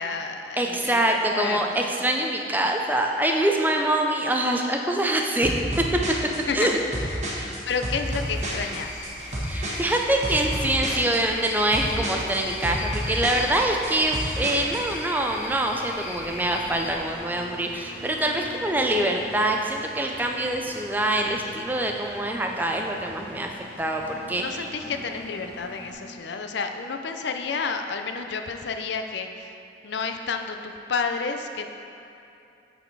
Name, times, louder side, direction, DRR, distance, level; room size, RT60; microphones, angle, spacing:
voice 1, 0.0-1.8 6.5-7.2 7.7-9.0 24.4-29.5 29.8-31.7, left 5 dB, 70° left, 5 dB, 0.5 m, -30 dB
voice 2, 0.6-6.2 6.5-6.8 9.4-23.5 23.8-24.7, right 1 dB, 10° right, 1 dB, 0.4 m, -25 dB
sound 1, 5.4-15.0, equal, 35° right, 1.2 m, -31 dB
Cricket / Frog, 8.0-17.0, left 2 dB, 40° left, 0.8 m, -38 dB
Engine, 12.4-25.9, equal, 15° left, 1.1 m, -44 dB
8.7 x 4.2 x 4.6 m, 2.7 s
head